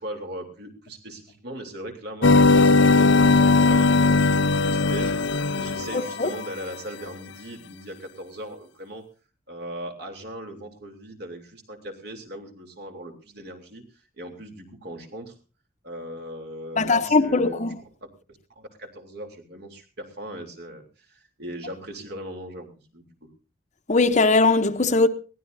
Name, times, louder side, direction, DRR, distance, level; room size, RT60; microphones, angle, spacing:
voice 1, 0.0-9.1 9.5-13.8 14.2-15.4 15.8-17.7 18.0-18.1 18.6-22.7 22.9-23.1, right 1 dB, 55° right, 3.4 m, -39 dB
sound 1, 2.2-6.5, left 3 dB, 70° left, 0.7 m, -18 dB
voice 2, 16.8-17.8 23.9-25.1, left 3 dB, 40° left, 0.8 m, -19 dB
22.0 x 16.5 x 2.7 m
head